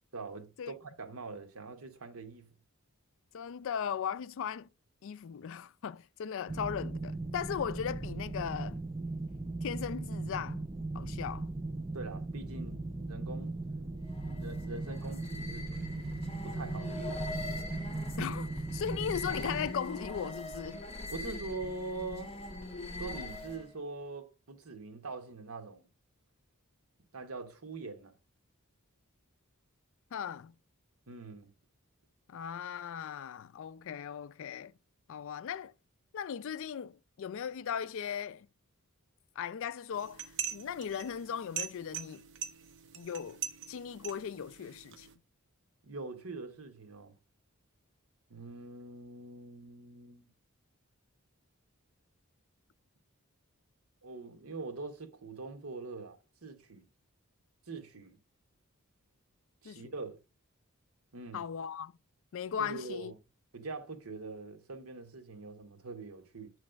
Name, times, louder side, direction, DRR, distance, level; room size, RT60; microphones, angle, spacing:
voice 1, 0.1-2.5 11.9-13.6 14.3-15.9 16.4-17.7 21.1-22.4 23.0-25.9 27.1-28.1 31.1-31.5 45.8-47.1 48.3-50.3 54.0-56.9 57.7-58.2 59.6-60.2 61.1-61.4 62.6-63.1 63.5-66.5, right 3 dB, 80° right, 1.2 m, -43 dB
voice 2, 3.3-4.7 5.0-8.8 9.6-10.7 10.9-11.5 18.2-20.9 30.1-30.5 32.3-34.7 35.1-35.7 36.1-38.5 39.4-42.2 42.9-43.4 43.7-45.1 59.6-59.9 61.3-61.9 62.3-63.1, left 8 dB, 65° left, 0.3 m, -38 dB
sound 1, 6.5-19.7, right 2 dB, 15° right, 0.3 m, -38 dB
sound 2, 14.0-23.8, left 2 dB, 25° left, 1.2 m, -42 dB
sound 3, 39.9-45.1, right 8 dB, 60° right, 0.7 m, -42 dB
7.8 x 3.2 x 5.0 m
head